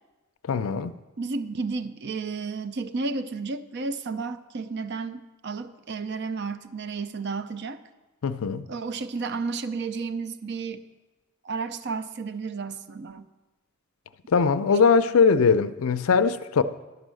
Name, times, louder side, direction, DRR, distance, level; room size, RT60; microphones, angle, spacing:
voice 1, 0.5-0.9 8.2-8.6 14.3-16.6, left 5 dB, 70° left, 0.4 m, -21 dB
voice 2, 1.2-7.8 8.7-10.8 11.4-13.3, right 4 dB, 50° right, 0.5 m, -32 dB
11.0 x 5.4 x 6.3 m
head